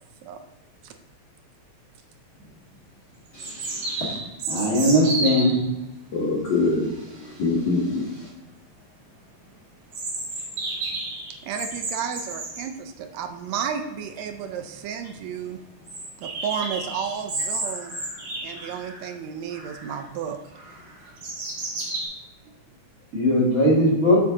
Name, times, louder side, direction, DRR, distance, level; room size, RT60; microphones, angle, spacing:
sound 1, 2.4-2.5 3.4-5.6 9.9-12.7 14.3-14.4 14.7-14.8 15.1-15.2 15.9-19.1 19.5-20.0 20.5-22.1, right 2 dB, 60° right, 3.1 m, -32 dB
voice 1, 3.3-4.1 6.1-8.3, left 3 dB, 85° left, -3 dB, 0.9 m, -26 dB
voice 2, 4.5-5.5 23.1-24.2, equal, 30° right, -5 dB, 2.4 m, -19 dB
voice 3, 11.4-15.6 16.2-18.0 18.4-20.4, right 7 dB, 80° right, 7 dB, 1.8 m, -32 dB
8.9 x 4.8 x 3.7 m, 0.97 s
omnidirectional pair, 3.4 m